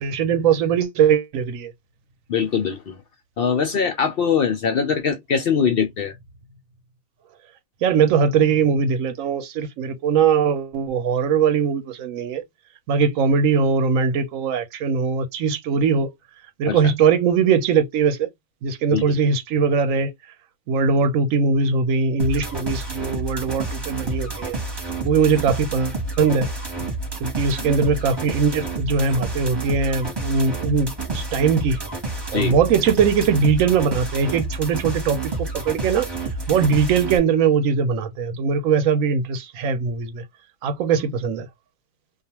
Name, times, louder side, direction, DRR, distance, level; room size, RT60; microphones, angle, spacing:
voice 1, 0.0-1.7 7.8-12.4 12.9-16.1 16.6-18.3 18.6-20.1 20.7-24.6 25.0-26.5 27.2-31.8 32.3-36.1 36.5-40.2 40.6-41.5, right 6 dB, 70° right, 1.0 m, -20 dB
voice 2, 2.3-3.0 3.4-6.1 16.7-16.8 18.9-19.2 27.6-27.7 32.3-32.6, left 6 dB, 70° left, 0.5 m, -22 dB
sound 1, 22.2-37.2, right 3 dB, 20° right, 0.9 m, -29 dB
2.4 x 2.4 x 2.8 m
omnidirectional pair, 1.6 m